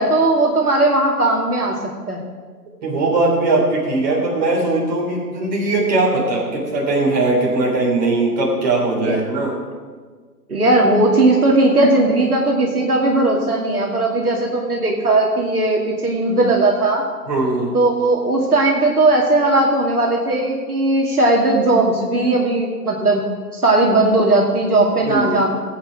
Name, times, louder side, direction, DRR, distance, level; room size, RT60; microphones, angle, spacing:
voice 1, 0.0-1.7 2.1-2.2 9.0-9.2 10.5-17.0 17.7-23.2 23.5-25.5, right 2 dB, 60° right, -1 dB, 2.3 m, -17 dB
voice 2, 2.8-9.5 17.3-17.7 25.0-25.3, right 2 dB, 25° right, -3 dB, 3.3 m, -19 dB
18.5 x 8.4 x 5.0 m, 1.5 s
figure-of-eight pair, 145°, 49 cm